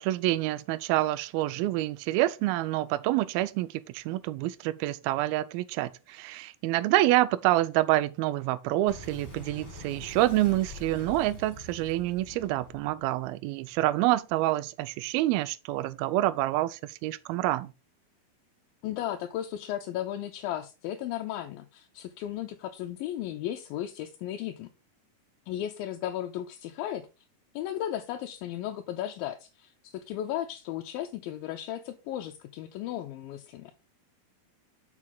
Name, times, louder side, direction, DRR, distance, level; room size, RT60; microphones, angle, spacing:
voice 1, 0.0-3.7 3.9-17.7, right 16 dB, 85° right, 2.4 m, -27 dB
Boom, 8.9-14.1, left 2 dB, 20° left, 2.7 m, -45 dB
voice 2, 18.8-24.7 25.5-27.1 27.5-33.7, left 12 dB, 80° left, 2.4 m, -35 dB
6.6 x 6.1 x 3.8 m
omnidirectional pair, 4.2 m